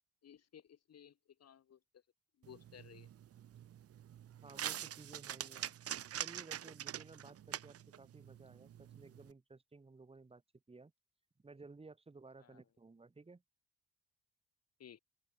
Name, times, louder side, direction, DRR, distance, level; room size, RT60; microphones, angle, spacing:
voice 1, 0.2-2.0 2.4-3.1 12.4-12.6 14.8-15.0, left 9 dB, 40° left, 1.8 m, -58 dB
sound 1, 2.4-9.3, right 10 dB, 35° right, 0.9 m, -45 dB
voice 2, 4.4-5.8 6.2-10.4 10.7-10.9 11.4-13.4, right 3 dB, 15° right, 1.7 m, -56 dB
open air
figure-of-eight pair, 45°, 39 cm